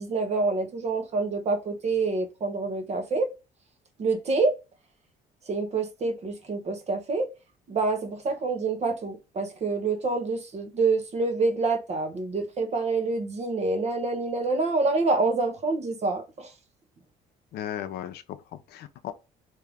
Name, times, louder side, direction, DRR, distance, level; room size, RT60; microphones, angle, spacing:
voice 1, 0.0-3.3 4.0-4.5 5.5-7.3 7.7-16.5, right 3 dB, 40° right, 1.0 m, -27 dB
voice 2, 17.5-19.1, left 11 dB, 70° left, 0.6 m, -36 dB
3.5 x 2.8 x 3.4 m
cardioid pair, 110°, 17 cm